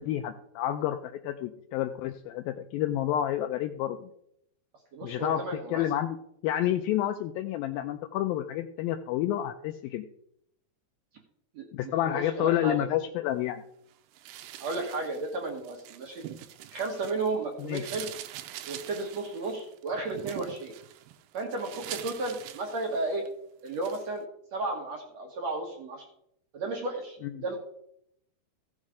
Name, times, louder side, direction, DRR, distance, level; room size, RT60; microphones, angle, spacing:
voice 1, 0.0-4.1 5.0-5.4 5.7-6.2 6.4-10.1 11.7-13.6 17.6-17.9 27.2-27.3, left 12 dB, 80° left, 6 dB, 2.1 m, -29 dB
voice 2, 4.9-5.9 11.5-12.9 14.6-16.3 16.7-18.1 18.7-20.7 21.3-23.3 23.6-24.2 24.5-26.1 26.5-27.6, right 2 dB, 60° right, 2 dB, 2.0 m, -33 dB
sound 1, 14.1-17.3 17.6-23.3 23.7-24.1, right 13 dB, 85° right, 2.7 m, -44 dB
15.0 x 6.4 x 4.9 m, 0.73 s
omnidirectional pair, 4.7 m